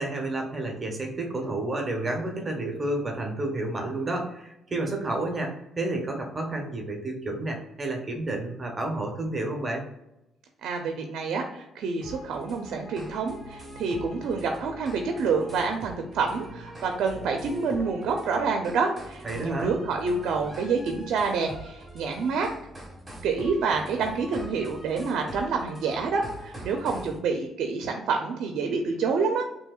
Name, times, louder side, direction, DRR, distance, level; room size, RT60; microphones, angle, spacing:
voice 1, 0.0-9.8 19.2-19.8, right 2 dB, 30° right, 2 dB, 1.0 m, -30 dB
voice 2, 10.6-22.5 23.2-29.4, right 4 dB, 75° right, 4 dB, 0.6 m, -28 dB
sound 1, 12.0-27.2, right 1 dB, 15° right, 1.4 m, -43 dB
5.5 x 2.9 x 2.4 m, 0.89 s
cardioid pair, 90°, 0 cm